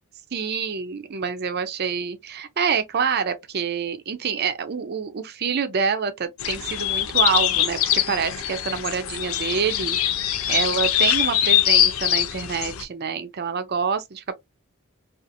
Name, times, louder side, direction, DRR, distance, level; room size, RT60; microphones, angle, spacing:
voice 1, 0.3-10.0 10.5-14.3, right 6 dB, 45° right, 0.5 m, -26 dB
sound 1, 6.4-12.8, left 11 dB, 65° left, 0.4 m, -23 dB
2.8 x 2.4 x 2.5 m
head